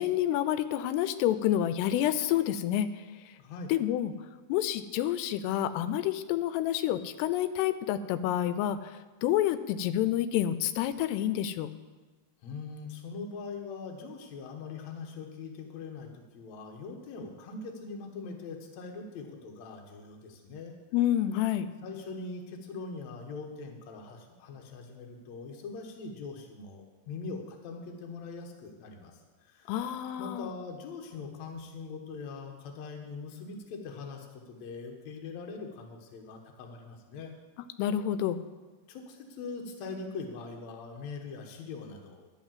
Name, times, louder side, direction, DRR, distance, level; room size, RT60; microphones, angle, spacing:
voice 1, 0.0-2.9 3.7-4.1 4.5-8.9 9.2-11.7 20.9-21.7 29.7-30.5 37.8-38.4, left 11 dB, 90° left, 13 dB, 2.6 m, -28 dB
voice 2, 3.4-3.7 12.4-20.7 21.8-29.1 29.4-29.7 30.2-37.3 38.9-42.3, left 4 dB, 65° left, 2 dB, 1.8 m, -42 dB
11.5 x 5.6 x 7.4 m, 1.3 s
omnidirectional pair, 4.7 m